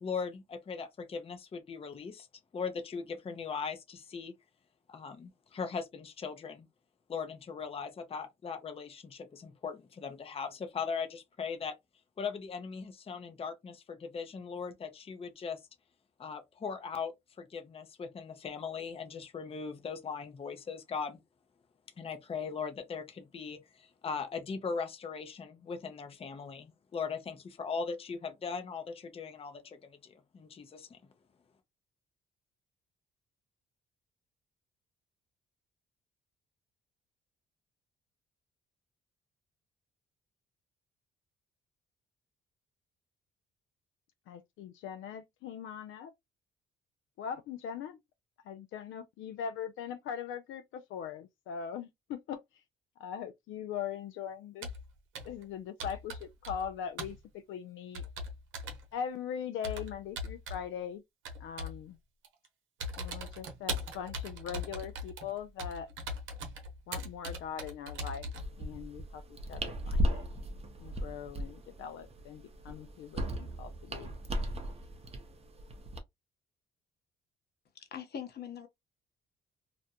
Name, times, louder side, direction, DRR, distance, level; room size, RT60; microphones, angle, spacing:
voice 1, 0.0-2.3 2.5-4.4 4.9-6.7 7.1-11.8 12.2-15.6 16.2-21.2 22.0-31.0, left 5 dB, 30° left, 0.6 m, -39 dB
voice 2, 44.3-46.1 47.2-48.0 48.5-52.4 53.0-54.7 55.3-58.0 58.9-61.0 61.4-62.0 63.0-65.9 66.9-68.3 68.6-69.2 69.5-70.3 70.8-74.1, left 8 dB, 80° left, 0.4 m, -41 dB
Computer keyboard, 54.6-54.9 55.2-55.4 55.8-56.7 57.0-57.2 57.9-58.8 59.6-60.7 61.3-61.8 62.2-62.5 62.8-68.5, equal, 80° right, 0.8 m, -40 dB
sound 1, 68.3-76.0, equal, 30° right, 0.7 m, -36 dB
voice 3, 77.7-78.7, left 8 dB, 55° left, 0.9 m, -42 dB
2.5 x 2.1 x 2.7 m
cardioid pair, 90°, 20 cm